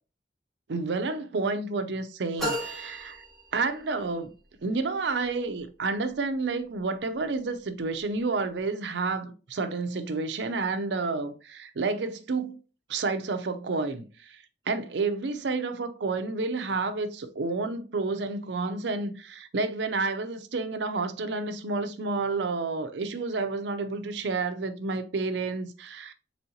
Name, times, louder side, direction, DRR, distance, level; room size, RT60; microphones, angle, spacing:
voice 1, 0.7-3.2 3.5-4.3 4.6-12.6 12.9-26.1, right 3 dB, 70° right, 0.5 m, -30 dB
sound 1, 2.4-4.1, right 1 dB, ahead, 1.4 m, -34 dB
4.1 x 3.8 x 2.8 m
head